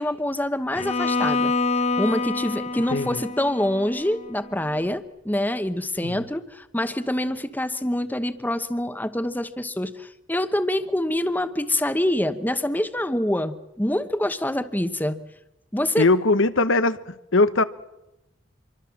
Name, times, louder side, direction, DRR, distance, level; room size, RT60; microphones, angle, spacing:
voice 1, 0.0-1.5 2.0-15.2 15.7-16.1, left 1 dB, 10° left, 1.0 m, -26 dB
Bowed string instrument, 0.8-4.8, left 3 dB, 35° left, 1.0 m, -27 dB
voice 2, 2.9-3.2 6.0-6.2 16.0-17.0 17.3-17.6, left 3 dB, 85° left, 1.1 m, -20 dB
26.0 x 23.5 x 7.3 m
head